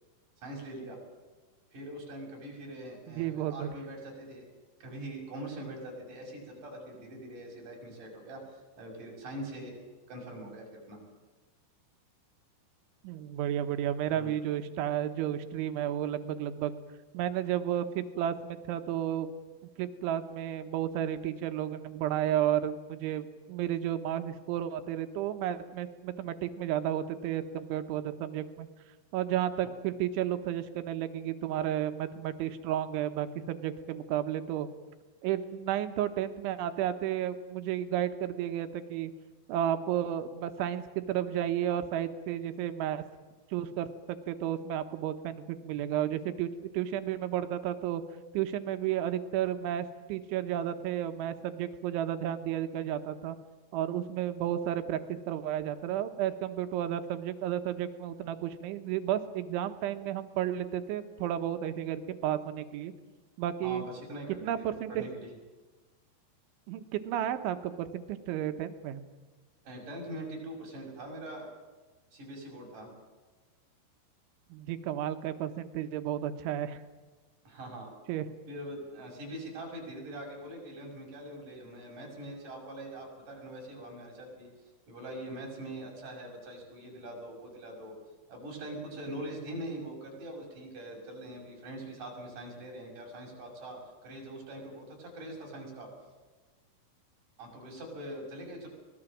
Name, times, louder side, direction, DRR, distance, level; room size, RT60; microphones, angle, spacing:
voice 1, 0.4-1.0 1.7-4.4 4.8-9.7 10.1-11.0 14.1-14.4 63.6-65.3 69.6-71.5 72.1-72.9 77.4-77.9 78.5-84.5 84.9-87.9 88.3-95.9 97.4-98.7, right 1 dB, 45° right, 0 dB, 7.6 m, -43 dB
voice 2, 3.1-3.7 13.0-16.7 17.1-19.4 19.8-28.7 29.1-34.7 35.2-39.1 39.5-43.0 43.5-48.0 48.3-53.4 53.7-62.9 63.4-63.8 64.4-65.0 66.7-69.0 74.5-76.8 78.1-78.3, right 11 dB, 90° right, 8 dB, 3.6 m, -32 dB
24.0 x 19.5 x 7.6 m, 1.3 s
omnidirectional pair, 5.3 m